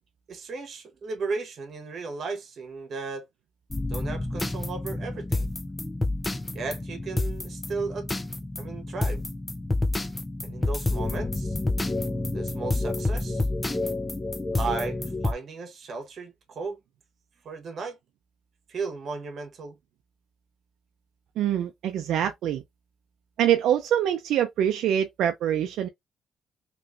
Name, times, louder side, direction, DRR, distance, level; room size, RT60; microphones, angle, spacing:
voice 1, 0.3-3.2 3.9-5.5 6.5-8.1 8.6-9.2 10.4-11.6 12.3-13.5 14.5-16.8 17.4-18.0 18.7-19.8, right 4 dB, 55° right, 1.2 m, -35 dB
sound 1, 3.7-15.3, left 2 dB, 15° left, 0.5 m, -29 dB
voice 2, 21.4-22.6 23.4-25.9, right 10 dB, 80° right, 0.5 m, -24 dB
3.2 x 3.0 x 2.5 m
cardioid pair, 90°, 0 cm